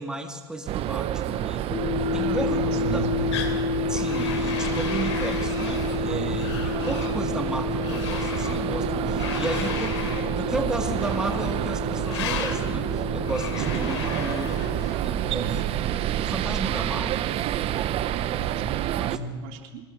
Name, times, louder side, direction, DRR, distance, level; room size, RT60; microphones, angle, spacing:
voice 1, 0.0-1.7 2.1-3.1 3.9-17.4 18.9-19.2, right 2 dB, 5° right, 5 dB, 1.9 m, -34 dB
sound 1, 0.7-19.2, right 12 dB, 40° right, 1.0 m, -28 dB
sound 2, 1.7-14.8, left 8 dB, 20° left, 2.5 m, -31 dB
voice 2, 2.1-3.3 6.0-6.5 14.9-15.6 18.1-19.8, right 5 dB, 60° right, 4 dB, 3.2 m, -35 dB
sound 3, 3.3-3.6 3.9-6.0 6.3-7.2 7.8-8.6 9.2-10.3 10.9-11.5 12.0-12.6 13.2-15.0, left 8 dB, 85° left, 3.3 m, -36 dB
26.0 x 20.0 x 6.4 m, 1.3 s
supercardioid pair, 115°, 15 cm